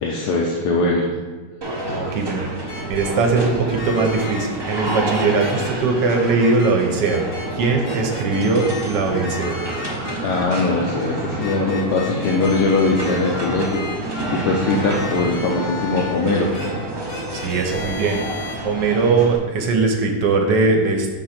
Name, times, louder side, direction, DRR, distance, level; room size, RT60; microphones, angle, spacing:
voice 1, 0.0-1.1 10.2-13.8 14.3-16.5, left 3 dB, 75° left, -1 dB, 1.2 m, -21 dB
sound 1, 1.6-19.4, right 1 dB, 25° right, 0.5 m, -29 dB
voice 2, 1.9-2.5 2.9-7.3 7.5-9.6 17.3-18.2 18.6-21.1, right 4 dB, 75° right, 3 dB, 1.4 m, -20 dB
sound 2, 2.7-3.1 3.7-4.4 4.8-5.7 6.2-6.7 7.0-7.4 7.8-8.8 9.1-10.6 11.4-16.1 16.5-16.7 17.1-18.5, left 3 dB, 55° left, 1.7 m, -33 dB
6.1 x 3.8 x 5.8 m, 1.3 s
omnidirectional pair, 1.9 m